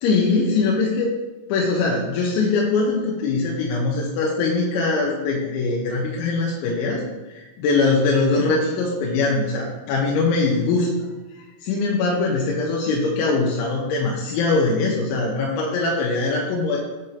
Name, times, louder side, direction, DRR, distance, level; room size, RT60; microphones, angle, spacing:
voice 1, 0.0-1.1 1.5-10.9 11.4-16.8, left 3 dB, 80° left, -3 dB, 3.0 m, -22 dB
7.6 x 2.7 x 5.6 m, 1.2 s
omnidirectional pair, 5.7 m